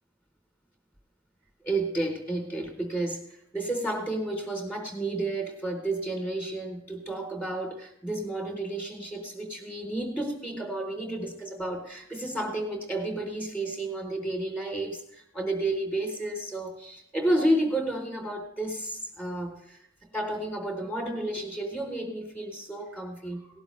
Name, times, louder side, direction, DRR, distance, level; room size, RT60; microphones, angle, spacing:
voice 1, 1.6-19.8 20.1-23.6, right 1 dB, 10° left, 3 dB, 3.9 m, -31 dB
19.0 x 11.5 x 3.4 m, 0.73 s
head